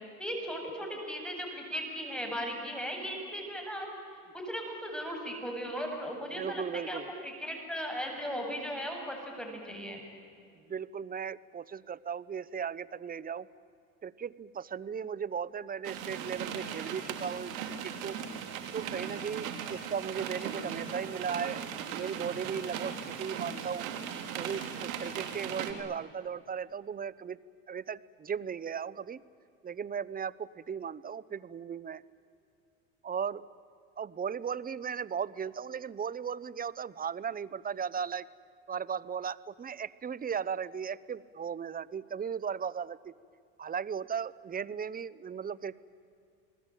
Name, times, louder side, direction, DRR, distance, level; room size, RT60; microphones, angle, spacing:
voice 1, 0.2-3.9 4.3-10.0, equal, ahead, 1 dB, 7.2 m, -37 dB
voice 2, 6.4-7.1 10.7-13.5 14.0-18.2 18.7-21.6 21.9-22.9 23.2-23.9 24.3-27.4 27.7-29.2 29.6-32.0 33.0-33.5 34.0-38.3 38.7-43.1 43.6-45.8, right 7 dB, 20° right, 18 dB, 0.8 m, -36 dB
sound 1, 15.8-25.7, right 8 dB, 85° right, 3.2 m, -38 dB
29.5 x 20.5 x 9.1 m, 2.4 s
supercardioid pair, 90°, 40 cm